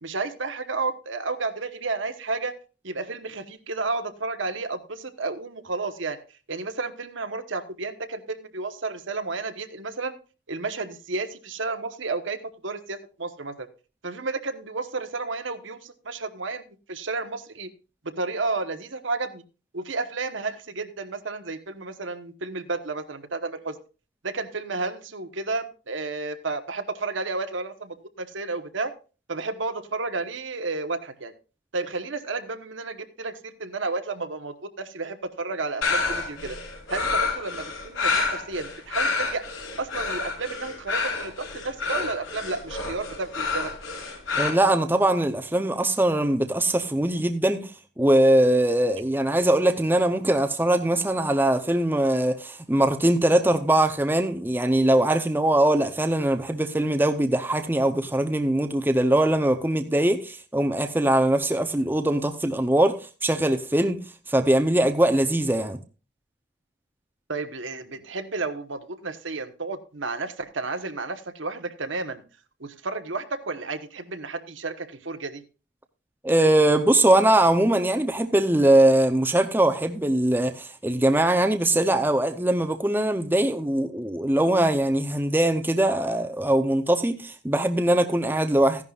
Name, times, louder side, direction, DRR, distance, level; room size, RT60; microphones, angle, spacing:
voice 1, 0.0-2.5 2.8-6.2 6.5-10.1 10.5-12.4 12.6-13.7 14.0-16.6 16.9-17.7 18.2-19.4 19.7-23.8 24.2-28.9 29.3-31.3 31.7-36.5 36.9-39.4 39.8-43.7 67.3-72.2 72.6-75.4, right 3 dB, 70° right, 1.1 m, -32 dB
sound 1, 35.8-44.5, left 4 dB, 85° left, 4.9 m, -28 dB
voice 2, 44.4-47.7 48.0-65.8 76.2-88.8, right 1 dB, 10° right, 0.6 m, -21 dB
15.0 x 11.0 x 2.4 m
head